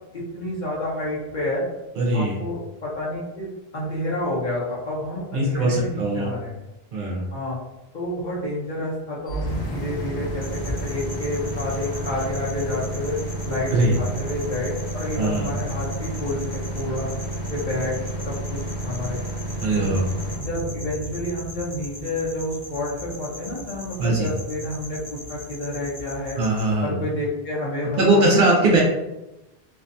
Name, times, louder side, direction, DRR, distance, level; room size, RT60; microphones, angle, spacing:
voice 1, 0.1-1.6 2.1-3.5 3.7-6.5 7.3-7.6 7.9-13.2 13.4-17.1 17.5-18.0 18.3-18.6 18.8-19.2 19.7-19.9 20.4-26.4 26.8-28.2, left 1 dB, 55° left, -6 dB, 0.7 m, -29 dB
voice 2, 2.0-2.4 5.3-6.3 6.9-7.2 13.7-13.9 15.1-15.5 19.6-20.0 24.0-24.3 26.4-27.0 28.0-28.8, right 2 dB, 65° right, -3 dB, 0.7 m, -20 dB
sound 1, 9.3-23.2, right 1 dB, 85° left, 0.9 m, -31 dB
sound 2, 10.4-26.7, left 1 dB, 25° right, 0.6 m, -40 dB
2.5 x 2.2 x 2.5 m, 0.97 s
omnidirectional pair, 1.0 m